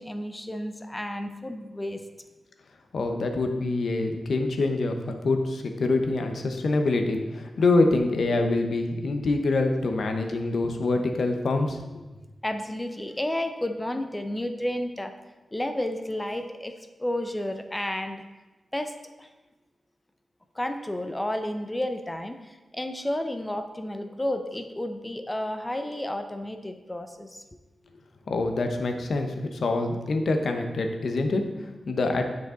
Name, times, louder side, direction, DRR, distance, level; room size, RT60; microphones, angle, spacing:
voice 1, 0.0-2.0 12.4-15.1 15.5-18.2 18.7-19.3 20.5-27.4, left 1 dB, 15° left, 7 dB, 0.5 m, -31 dB
voice 2, 2.9-12.0 28.3-32.2, left 2 dB, 65° left, 5 dB, 0.8 m, -25 dB
9.4 x 5.2 x 3.8 m, 1.1 s
wide cardioid pair, 110°, 0 cm